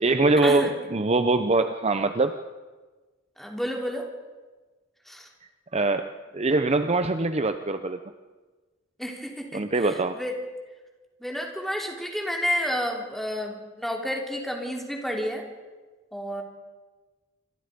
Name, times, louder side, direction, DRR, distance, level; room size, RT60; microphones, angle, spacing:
voice 1, 0.0-2.3 5.7-6.1 6.3-8.0 9.5-10.2, right 2 dB, 35° right, 9 dB, 0.8 m, -23 dB
voice 2, 3.4-4.1 5.1-5.3 9.0-10.3 11.2-15.4 16.1-16.4, equal, ahead, 1 dB, 3.6 m, -30 dB
27.0 x 26.0 x 5.3 m, 1.3 s
head